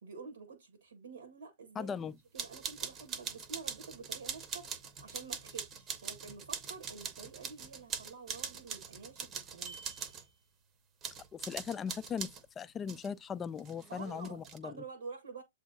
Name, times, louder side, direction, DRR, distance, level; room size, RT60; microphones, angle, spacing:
voice 1, 0.0-2.0 2.3-9.8 13.9-15.4, right 5 dB, 70° right, 1.0 m, -49 dB
voice 2, 1.8-2.1 11.3-12.3 12.6-14.7, left 7 dB, 20° left, 0.3 m, -38 dB
sound 1, 2.4-10.3 11.0-12.4 12.9-13.1 13.6-14.6, right 6 dB, 25° right, 0.8 m, -42 dB
7.7 x 2.7 x 2.5 m
figure-of-eight pair, 105°, 0 cm